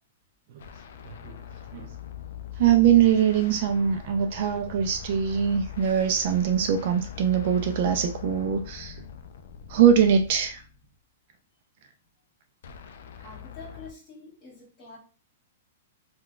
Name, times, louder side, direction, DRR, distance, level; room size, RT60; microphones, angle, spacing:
sound 1, 0.6-10.8 12.6-13.9, left 9 dB, 65° left, 0.3 m, -42 dB
voice 1, 1.0-1.4 1.7-1.9 2.6-9.0 9.7-10.6, right 8 dB, 45° right, 6 dB, 0.3 m, -22 dB
voice 2, 13.2-15.0, left 3 dB, 20° left, -5 dB, 1.4 m, -46 dB
3.7 x 2.2 x 2.3 m, 0.38 s
hypercardioid pair, 160°, 0 cm